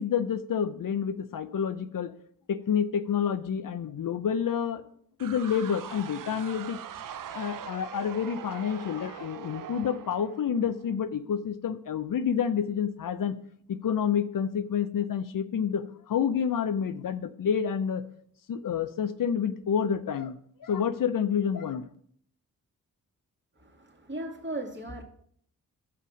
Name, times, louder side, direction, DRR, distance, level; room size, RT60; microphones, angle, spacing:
voice 1, 0.0-2.1 2.5-4.8 5.2-6.8 7.3-13.4 13.7-18.0 18.5-21.9, left 7 dB, 60° left, 11 dB, 0.6 m, -29 dB
sound 1, 5.2-11.0, right 9 dB, 60° right, 0.6 m, -42 dB
voice 2, 23.6-25.0, right 1 dB, 30° right, 0 dB, 2.1 m, -37 dB
6.9 x 5.7 x 6.2 m, 0.63 s
cardioid pair, 45°, 36 cm